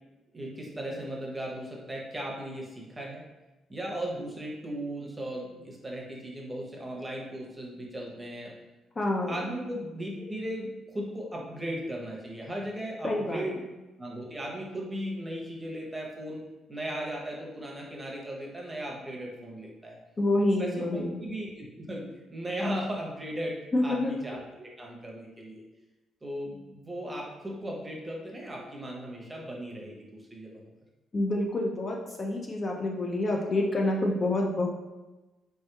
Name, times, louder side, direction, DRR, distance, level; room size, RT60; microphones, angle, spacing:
voice 1, 0.3-3.2 3.7-8.5 9.3-13.6 14.0-16.4 16.7-20.0 20.6-22.0 22.3-25.6 26.2-30.5, equal, 15° right, -2 dB, 0.7 m, -37 dB
voice 2, 9.0-9.5 13.0-13.4 20.2-21.1 23.7-24.1 31.1-34.7, left 1 dB, 35° left, 0 dB, 0.4 m, -27 dB
3.4 x 2.8 x 2.2 m, 1.1 s
cardioid pair, 90°, 0 cm